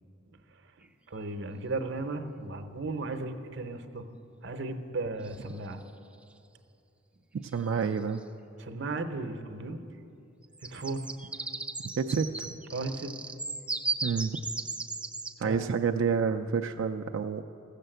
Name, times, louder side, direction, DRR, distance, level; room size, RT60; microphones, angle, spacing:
sound 1, 0.9-1.0 5.2-5.8 7.5-7.6 7.8-8.2 10.4-15.4, right 3 dB, 5° right, 0.4 m, -36 dB
voice 1, 1.1-4.0 4.4-5.8 8.6-9.8 10.7-11.0 12.7-13.1 15.4-15.7, right 3 dB, 60° right, 7 dB, 0.8 m, -35 dB
voice 2, 7.5-8.2 12.0-12.5 14.0-14.4 15.4-17.4, right 6 dB, 75° right, 5 dB, 0.4 m, -28 dB
15.0 x 6.7 x 7.8 m, 2.7 s
head